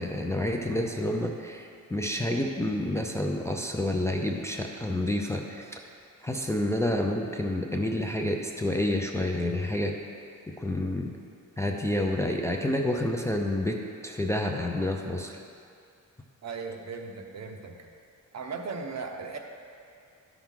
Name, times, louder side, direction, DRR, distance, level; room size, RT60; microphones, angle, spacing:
voice 1, 0.0-5.8 6.2-9.9 10.6-11.2 11.6-13.8 14.0-15.4, left 1 dB, 10° left, 1 dB, 0.4 m, -29 dB
voice 2, 16.4-17.9 18.3-19.4, right 4 dB, 55° right, 3 dB, 0.8 m, -37 dB
12.5 x 5.9 x 3.7 m, 2.4 s
wide cardioid pair, 135°, 32 cm